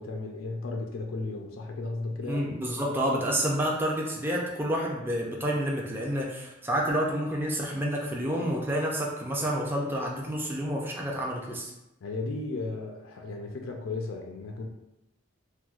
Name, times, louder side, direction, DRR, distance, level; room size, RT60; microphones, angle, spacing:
voice 1, 0.0-2.6 12.0-14.7, left 3 dB, 85° left, 2 dB, 0.4 m, -35 dB
voice 2, 2.2-11.7, equal, 10° right, -3 dB, 0.4 m, -29 dB
4.4 x 2.0 x 2.4 m, 0.92 s
head